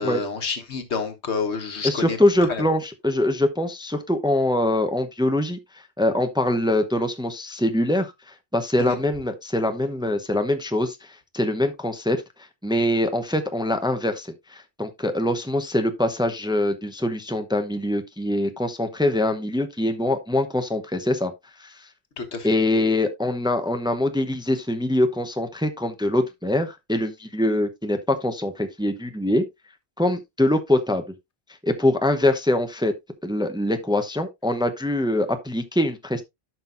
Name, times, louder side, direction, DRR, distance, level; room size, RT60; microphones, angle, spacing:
voice 1, 0.0-2.2 2.5-2.6 8.8-9.0 22.2-22.5, left 5 dB, 85° left, 1.6 m, -28 dB
voice 2, 1.8-12.2 12.6-21.3 21.6-21.9 22.4-29.5 30.0-31.0 31.6-32.9 33.2-36.2, left 1 dB, 5° right, 0.7 m, -23 dB
11.5 x 6.0 x 2.6 m
omnidirectional pair, 1.1 m